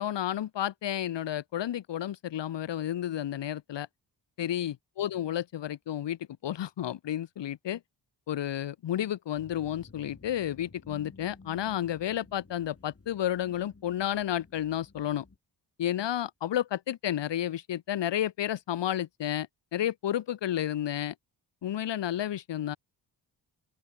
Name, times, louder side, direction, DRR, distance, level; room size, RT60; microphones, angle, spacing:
voice 1, 0.0-3.9 4.4-7.8 8.3-15.2 15.8-21.1 21.6-22.8, left 11 dB, 65° left, 0.9 m, -31 dB
sound 1, 9.3-15.4, left 3 dB, 30° left, 2.9 m, -54 dB
open air
cardioid pair, 60°, 45 cm